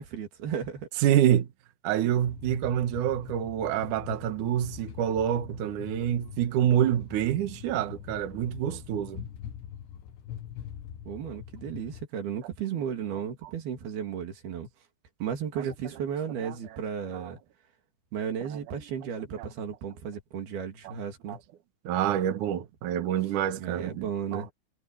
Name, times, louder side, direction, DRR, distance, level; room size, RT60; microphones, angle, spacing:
voice 1, 0.0-0.9 11.1-14.7 15.2-17.4 18.1-21.4 23.6-24.5, right 8 dB, 55° right, 4.2 m, -34 dB
voice 2, 1.0-1.5 1.8-9.2 15.6-15.7 16.4-16.5 17.1-17.3 20.8-20.9 21.3-21.4 21.8-24.4, right 11 dB, 80° right, 1.7 m, -27 dB
sound 1, 2.3-12.1, left 10 dB, 70° left, 3.3 m, -43 dB
omnidirectional pair, 5.8 m